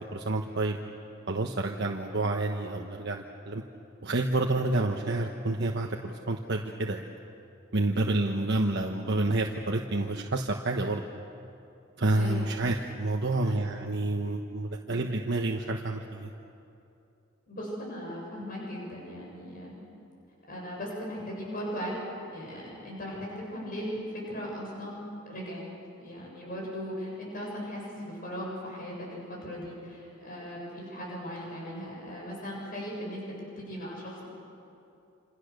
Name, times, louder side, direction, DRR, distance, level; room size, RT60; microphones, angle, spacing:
voice 1, 0.1-0.8 1.3-3.6 4.0-7.0 7.7-11.1 12.0-16.3, right 2 dB, 55° right, 1 dB, 1.2 m, -29 dB
voice 2, 12.1-12.5 13.4-13.6 17.5-19.8 20.5-22.0 22.3-25.6 26.0-33.2 33.6-34.3, equal, 45° left, -3 dB, 7.4 m, -38 dB
27.5 x 27.5 x 6.7 m, 2.7 s
head